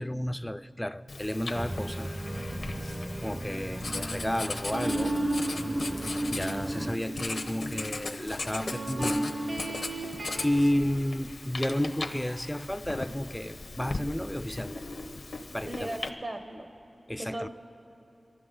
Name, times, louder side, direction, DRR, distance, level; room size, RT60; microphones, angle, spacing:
voice 1, 0.0-2.2 3.2-5.1 6.3-9.3 9.8-10.1 10.4-14.9 15.5-16.0 17.1-17.5, left 1 dB, 10° left, 0.4 m, -32 dB
Writing, 1.1-16.1, left 3 dB, 80° left, 0.8 m, -39 dB
Organ, 1.5-7.0, right 1 dB, 30° right, 0.6 m, -38 dB
sound 1, 4.7-10.7, right 1 dB, 75° right, 1.2 m, -33 dB
voice 2, 15.6-16.7 17.2-17.5, right 1 dB, 50° right, 1.0 m, -37 dB
23.5 x 13.0 x 3.8 m
wide cardioid pair, 60°, 0 cm